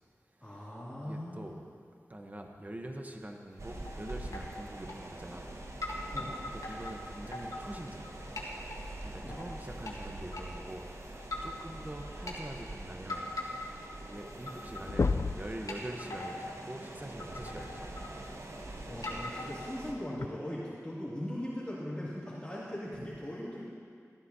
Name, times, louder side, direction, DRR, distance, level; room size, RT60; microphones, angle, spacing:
voice 1, 0.4-1.6 6.1-6.4 9.2-9.4 18.9-23.7, left 1 dB, 15° left, -9 dB, 2.5 m, -39 dB
voice 2, 1.0-1.6 2.1-5.5 6.5-8.1 9.0-13.6 14.0-18.0 22.9-23.1, right 1 dB, 25° right, 3 dB, 1.0 m, -44 dB
sound 1, 3.5-4.0 4.2-4.5 4.9-5.5 5.8-8.1 8.4-8.8 9.3-9.9 10.3-10.4 11.2-11.6 12.0-12.4 13.1-13.9 14.2-14.9 15.2-15.3 15.7-16.5 16.9-17.0 17.2-18.5 19.0-19.9, left 2 dB, 75° left, 1.7 m, -41 dB
sound 2, 3.6-19.9, right 1 dB, 55° right, 1.0 m, -44 dB
sound 3, 14.0-14.1 14.3-14.6 14.9-15.5 17.2-17.3 19.2-19.3 20.2-20.3, left 4 dB, 60° left, 0.4 m, -30 dB
14.0 x 13.0 x 2.8 m, 2.2 s
wide cardioid pair, 50°, 6 cm